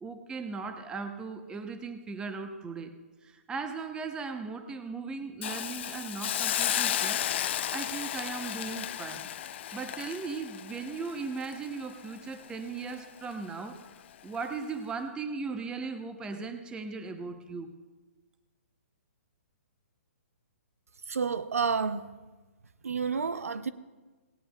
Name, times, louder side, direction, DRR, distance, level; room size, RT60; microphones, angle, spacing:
voice 1, 0.0-2.9 3.2-9.3 9.7-13.8 14.2-17.7, right 4 dB, 10° right, 0.8 m, -38 dB
Hiss, 5.4-12.5 12.8-13.0, left 11 dB, 50° left, 0.4 m, -33 dB
voice 2, 21.1-22.0 22.8-23.7, right 5 dB, 85° right, 0.6 m, -29 dB
18.0 x 17.0 x 2.3 m
hypercardioid pair, 140°, 8 cm